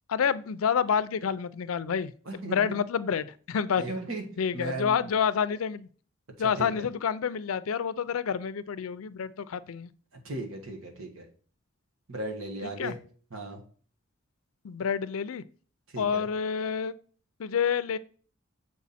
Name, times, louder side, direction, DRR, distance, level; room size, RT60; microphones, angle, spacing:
voice 1, 0.1-3.8 4.4-5.9 6.4-9.9 12.6-12.9 14.6-15.4 16.0-16.9 17.4-18.0, left 7 dB, 85° left, 15 dB, 0.4 m, -28 dB
voice 2, 2.3-2.7 3.8-4.2 4.5-5.1 6.6-6.7 10.2-11.2 12.1-13.0 13.3-13.6 15.9-16.2, right 2 dB, 80° right, 3 dB, 1.5 m, -36 dB
7.2 x 4.6 x 4.2 m, 0.43 s
head